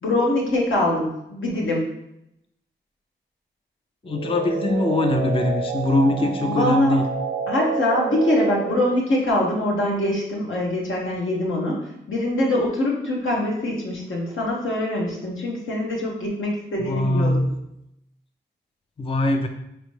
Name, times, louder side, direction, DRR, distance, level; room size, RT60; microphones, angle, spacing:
voice 1, 0.0-1.9 6.1-7.0 7.5-17.4, left 1 dB, 85° left, -2 dB, 1.1 m, -24 dB
voice 2, 4.0-7.1 16.8-17.5 19.0-19.5, left 2 dB, 30° left, 5 dB, 0.4 m, -22 dB
sound 1, 4.1-9.0, right 6 dB, 60° right, 0.6 m, -29 dB
4.1 x 3.0 x 3.2 m, 0.82 s
wide cardioid pair, 75°, 20 cm